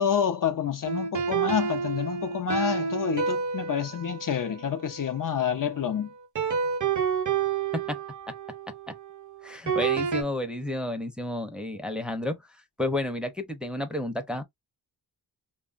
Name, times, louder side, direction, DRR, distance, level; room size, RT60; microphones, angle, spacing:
voice 1, 0.0-6.1, left 8 dB, 55° left, 0.5 m, -28 dB
sound 1, 0.8-5.7 6.4-10.2, right 6 dB, 50° right, 0.6 m, -30 dB
voice 2, 9.4-12.4 12.8-14.4, left 1 dB, ahead, 0.5 m, -31 dB
2.9 x 2.2 x 2.4 m
wide cardioid pair, 90°, 39 cm